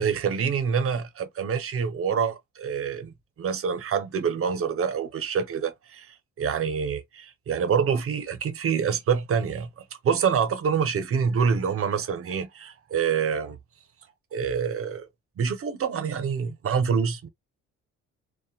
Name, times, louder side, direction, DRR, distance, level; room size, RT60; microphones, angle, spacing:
voice 1, 0.0-13.6 14.3-15.1 15.4-17.3, right 6 dB, 50° right, 0.6 m, -26 dB
2.8 x 2.2 x 2.3 m
cardioid pair, 90°, 30 cm